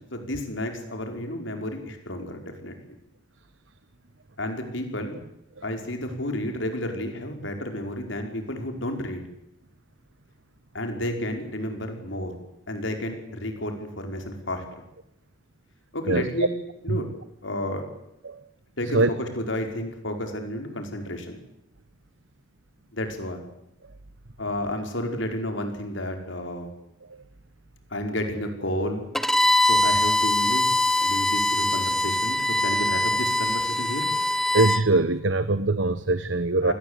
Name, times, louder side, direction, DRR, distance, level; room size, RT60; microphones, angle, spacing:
voice 1, 0.0-2.7 4.4-5.2 5.6-9.2 10.7-12.3 12.7-14.6 15.9-16.5 16.8-17.1 17.4-17.9 18.8-19.0 19.4-21.4 22.9-23.4 24.4-26.7 27.9-29.1 29.6-30.7 31.0-34.1 36.6-36.7, left 1 dB, 70° left, 5 dB, 5.0 m, -31 dB
voice 2, 16.1-16.5 16.9-17.0 18.2-18.4 18.9-19.1 31.0-31.1 34.5-36.7, right 2 dB, 70° right, 13 dB, 1.1 m, -22 dB
Bowed string instrument, 29.1-34.8, left 1 dB, ahead, 1.1 m, -23 dB
28.5 x 20.0 x 8.3 m, 0.81 s
head